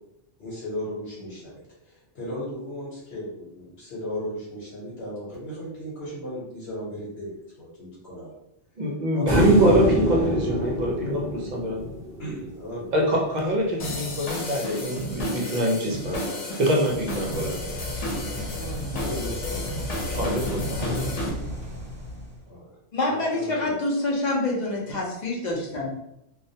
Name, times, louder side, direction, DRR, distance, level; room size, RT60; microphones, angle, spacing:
voice 1, 0.4-1.5 1.8-8.3 9.1-9.3 12.2-13.2 18.5-20.2 22.5-22.7 23.1-23.8, equal, 70° left, -7 dB, 1.1 m, -36 dB
voice 2, 8.8-12.0 12.9-16.2 16.6-17.6 17.9-18.2 20.1-21.1, right 1 dB, 55° right, -2 dB, 0.5 m, -25 dB
sound 1, 9.3-12.5 15.1-15.2, equal, 10° left, 0.7 m, -24 dB
sound 2, 13.8-21.3, left 1 dB, 90° left, 1.0 m, -32 dB
sound 3, 16.8-22.5, equal, 35° right, 1.0 m, -35 dB
voice 3, 22.9-25.9, left 2 dB, 50° left, -3 dB, 0.5 m, -26 dB
2.3 x 2.1 x 2.6 m, 0.82 s
omnidirectional pair, 1.2 m